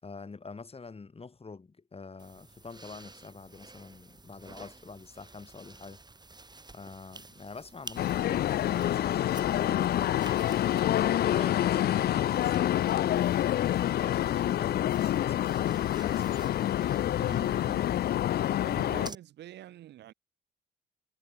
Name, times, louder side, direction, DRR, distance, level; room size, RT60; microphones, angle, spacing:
voice 1, 0.0-6.0 6.7-10.6 11.1-13.6 13.9-16.6, left 4 dB, 35° left, 7.1 m, -46 dB
sound 1, 2.2-19.2, right 3 dB, 25° right, 4.6 m, -51 dB
sound 2, 8.0-19.1, left 12 dB, 65° left, 0.6 m, -27 dB
voice 2, 17.1-17.9 18.6-20.1, right 13 dB, 75° right, 3.2 m, -46 dB
supercardioid pair, 60°, 18 cm